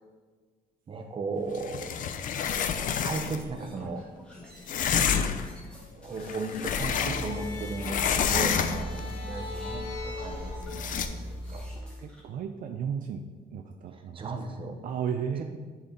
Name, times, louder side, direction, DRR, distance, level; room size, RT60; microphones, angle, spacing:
voice 1, 0.9-1.9 3.0-4.0 5.0-5.4 6.0-9.9 10.2-11.6 14.1-14.8, right 3 dB, 35° right, 5 dB, 0.8 m, -36 dB
sound 1, 1.5-3.5 4.7-5.5 6.2-7.5 7.8-9.0 10.7-11.1, left 7 dB, 60° left, 0.5 m, -28 dB
sound 2, 2.8-12.2, equal, 5° left, 1.5 m, -51 dB
sound 3, 6.8-11.8, left 1 dB, 35° left, 1.2 m, -37 dB
voice 2, 12.0-13.2 13.5-14.3 14.8-15.4, right 7 dB, 65° right, 5 dB, 0.5 m, -33 dB
10.5 x 4.3 x 3.9 m, 1.4 s
cardioid pair, 160°, 15 cm